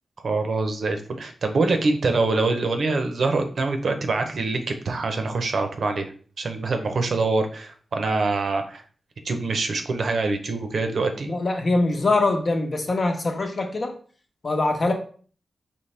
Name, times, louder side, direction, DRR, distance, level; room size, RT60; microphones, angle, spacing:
voice 1, 0.2-6.1 6.4-8.8 9.2-11.3, right 3 dB, 70° right, 5 dB, 0.7 m, -24 dB
voice 2, 11.3-13.9 14.4-14.9, left 2 dB, 50° left, 3 dB, 0.9 m, -23 dB
4.3 x 3.0 x 3.3 m, 0.43 s
cardioid pair, 65°, 0 cm